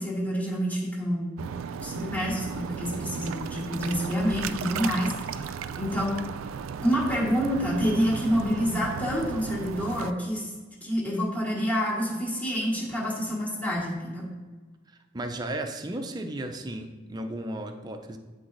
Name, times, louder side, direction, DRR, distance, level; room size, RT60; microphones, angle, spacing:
voice 1, 0.0-1.4 1.8-5.5 5.8-6.2 6.8-10.5 10.8-14.3, equal, 10° left, -5 dB, 1.4 m, -28 dB
sound 1, 1.4-10.1, right 7 dB, 85° right, 0.3 m, -35 dB
voice 2, 14.9-18.2, right 1 dB, 20° right, 5 dB, 0.4 m, -35 dB
9.8 x 3.9 x 2.6 m, 1.3 s
head